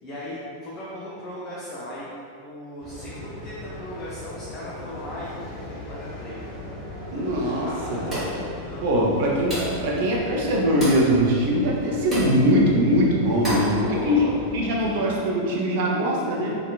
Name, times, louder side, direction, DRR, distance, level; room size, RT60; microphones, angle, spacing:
voice 1, 0.0-2.1 2.4-6.7 7.2-9.3 13.8-14.3 14.8-15.0 16.2-16.5, left 1 dB, 30° left, -8 dB, 0.4 m, -38 dB
sound 1, 2.8-15.1, left 2 dB, 15° left, 1.2 m, -38 dB
voice 2, 7.1-8.0 8.8-14.3 14.5-16.6, equal, 50° right, -2 dB, 0.5 m, -22 dB
sound 2, 8.1-8.5 9.5-9.9 10.8-11.1 12.1-12.4 13.4-13.8, equal, 15° right, 1.4 m, -29 dB
2.8 x 2.4 x 2.3 m, 2.4 s
figure-of-eight pair, 90°, 0 cm